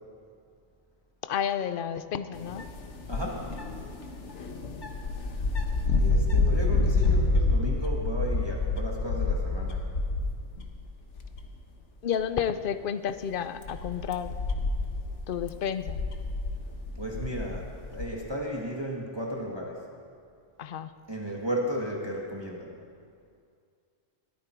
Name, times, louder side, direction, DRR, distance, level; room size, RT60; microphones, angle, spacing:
voice 1, 1.2-2.7 12.0-14.3 15.3-16.0 20.6-20.9, left 8 dB, 50° left, 11 dB, 0.8 m, -31 dB
sound 1, 2.3-10.8 11.1-11.6 12.1-12.2 13.1-18.1, left 3 dB, 70° left, 1.6 m, -28 dB
voice 2, 3.1-3.5 5.9-9.9 17.0-19.9 21.1-22.8, right 1 dB, 20° right, -2 dB, 1.8 m, -34 dB
22.0 x 14.0 x 4.6 m, 2.3 s
omnidirectional pair, 1.3 m